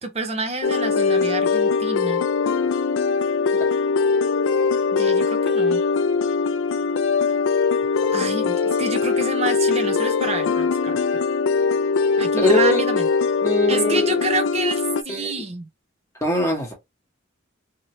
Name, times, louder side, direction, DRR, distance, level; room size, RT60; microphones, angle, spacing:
voice 1, 0.0-2.2 4.9-5.8 8.1-11.0 12.2-13.1 13.7-15.7, right 3 dB, 30° right, 0.6 m, -28 dB
sound 1, 0.6-15.0, left 5 dB, 70° left, 0.3 m, -21 dB
voice 2, 12.4-12.8 13.4-14.1 15.1-15.3 16.2-16.7, left 1 dB, 15° left, 1.2 m, -22 dB
2.8 x 2.7 x 3.0 m
head